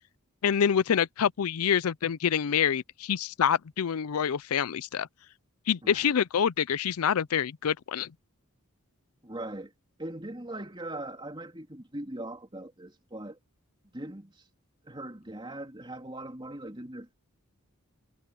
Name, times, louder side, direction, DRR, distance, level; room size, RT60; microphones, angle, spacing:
voice 1, 0.4-5.1 5.7-8.1, left 8 dB, 80° left, 0.5 m, -26 dB
voice 2, 9.2-9.7 10.0-13.4 13.9-14.3 14.8-17.1, right 1 dB, 20° right, 3.4 m, -40 dB
head